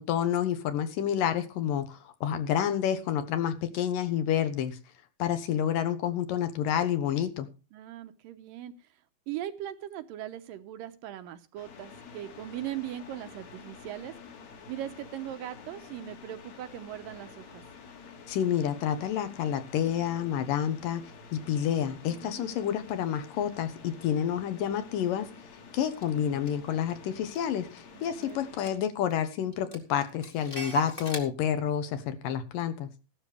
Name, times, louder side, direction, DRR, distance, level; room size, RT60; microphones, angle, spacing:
voice 1, 0.0-4.8 5.2-7.5 18.3-21.0 21.3-25.3 25.7-32.9, left 9 dB, 70° left, 10 dB, 2.7 m, -29 dB
voice 2, 7.7-8.9 9.3-14.1 14.7-17.6 22.1-22.5 27.9-28.4, right 12 dB, 75° right, 10 dB, 2.4 m, -39 dB
sound 1, 11.6-28.8, left 5 dB, 55° left, 2.9 m, -49 dB
Clock, 26.0-26.1 26.5-27.9 28.2-28.3 28.6-29.2 29.5-31.2, right 3 dB, 25° left, 1.1 m, -38 dB
15.5 x 12.5 x 3.3 m, 0.31 s
omnidirectional pair, 4.2 m